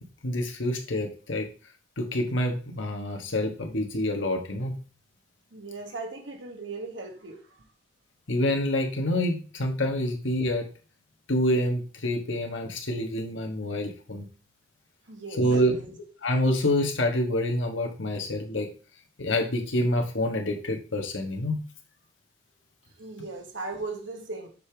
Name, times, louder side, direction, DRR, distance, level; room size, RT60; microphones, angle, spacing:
voice 1, 0.2-1.5 2.0-4.8 8.3-10.7 11.3-14.3 15.4-18.7 19.2-21.6, left 1 dB, 85° left, 3 dB, 1.3 m, -27 dB
voice 2, 5.5-7.4 15.1-15.4 23.0-24.5, right 3 dB, 75° right, 3 dB, 1.3 m, -37 dB
6.7 x 5.0 x 3.4 m, 0.36 s
head